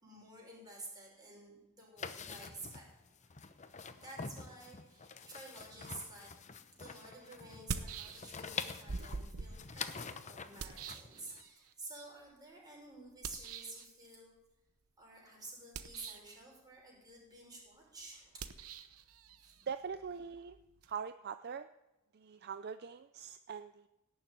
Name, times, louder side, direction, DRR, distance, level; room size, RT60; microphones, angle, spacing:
voice 1, 0.0-2.9 3.2-3.3 4.0-14.3 15.0-18.5 19.4-19.7, right 2 dB, 20° right, -3 dB, 6.1 m, -51 dB
sound 1, 2.0-11.4, left 5 dB, 30° left, 0.8 m, -46 dB
sound 2, 6.5-6.6 7.5-8.5 8.9-11.7 13.2-13.9 15.6-16.4 18.3-20.9, right 5 dB, 75° right, 0.9 m, -45 dB
voice 2, 19.7-20.6 20.9-21.7 22.1-23.9, right 6 dB, 45° right, 11 dB, 0.5 m, -42 dB
17.5 x 7.2 x 9.2 m, 0.99 s
head